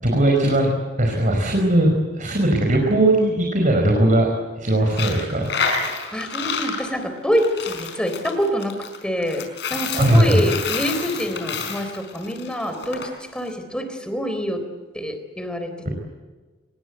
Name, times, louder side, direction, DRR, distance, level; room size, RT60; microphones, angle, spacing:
voice 1, 0.0-4.3 4.6-5.5 9.9-10.5, right 1 dB, 45° right, 1 dB, 5.1 m, -18 dB
Coin (dropping), 4.9-13.1, left 5 dB, 65° left, 5.2 m, -29 dB
voice 2, 6.1-14.6 14.9-15.9, equal, 5° left, 7 dB, 3.8 m, -26 dB
25.5 x 22.0 x 8.0 m, 1.3 s
head